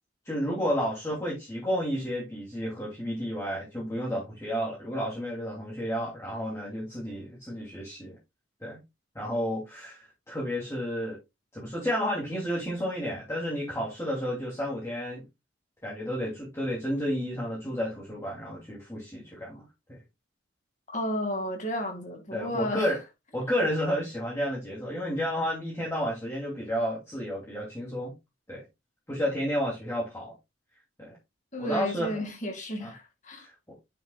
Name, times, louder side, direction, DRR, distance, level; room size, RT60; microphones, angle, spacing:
voice 1, 0.2-8.2 8.6-8.8 9.1-11.2 11.5-15.2 15.8-19.6 19.9-20.0 22.3-23.0 23.3-28.1 28.5-28.6 29.1-30.3 31.0-31.2 31.6-32.3 32.8-32.9 33.4-33.5, equal, 15° left, 2.9 m, -31 dB
voice 2, 20.9-22.9 31.5-33.5, equal, 35° left, 2.4 m, -32 dB
9.0 x 7.6 x 2.4 m
head